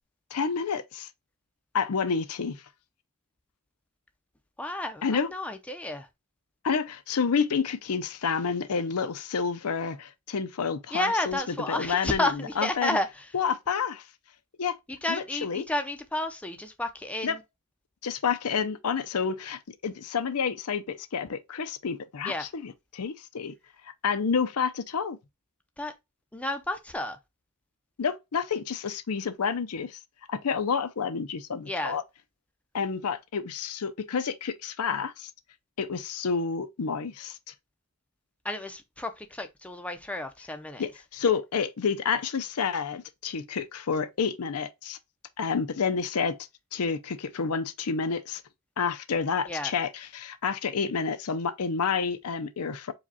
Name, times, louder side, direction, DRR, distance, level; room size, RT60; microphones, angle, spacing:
voice 1, 0.3-1.1 1.7-2.6 5.0-5.3 6.6-13.0 13.3-14.1 14.6-14.8 15.1-15.7 17.2-17.4 18.0-23.5 24.0-25.2 28.0-30.0 30.3-32.0 32.7-35.3 35.8-37.4 40.8-45.0 45.4-48.4 48.8-52.9, left 6 dB, 75° left, 0.6 m, -29 dB
voice 2, 4.6-6.1 10.9-13.1 15.0-17.3 22.3-22.5 25.8-25.9 26.3-27.2 31.7-32.0 38.4-40.8 49.5-49.7, left 1 dB, 5° left, 0.5 m, -31 dB
4.9 x 2.3 x 4.0 m
head